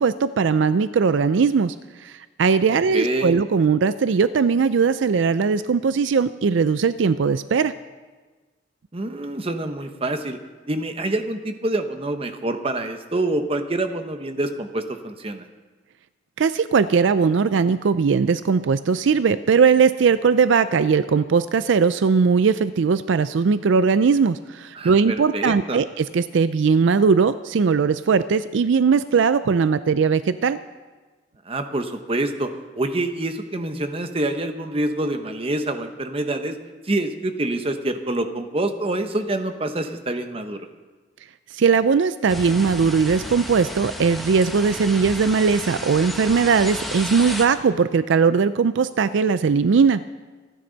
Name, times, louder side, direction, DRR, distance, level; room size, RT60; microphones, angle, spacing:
voice 1, 0.0-1.7 2.0-7.7 16.4-30.6 41.5-50.0, right 5 dB, 70° right, 13 dB, 0.4 m, -19 dB
voice 2, 2.7-3.3 8.9-10.4 10.7-15.5 24.7-25.8 31.5-32.5 32.7-36.5 36.8-40.7, right 2 dB, 30° right, 7 dB, 0.9 m, -26 dB
sound 1, 42.3-47.4, equal, ahead, 1.2 m, -33 dB
26.0 x 10.0 x 4.0 m, 1.3 s
head